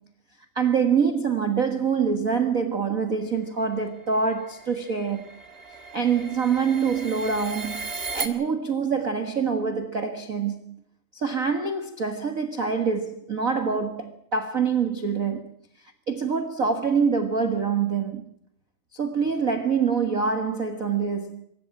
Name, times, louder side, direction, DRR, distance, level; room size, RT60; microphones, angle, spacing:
voice 1, 0.5-5.3 5.9-10.8 11.1-15.5 16.1-18.2 18.9-21.4, right 6 dB, 90° right, 0.7 m, -25 dB
sound 1, 3.5-8.3, right 4 dB, 45° right, 0.7 m, -37 dB
24.5 x 14.0 x 8.8 m
omnidirectional pair, 4.2 m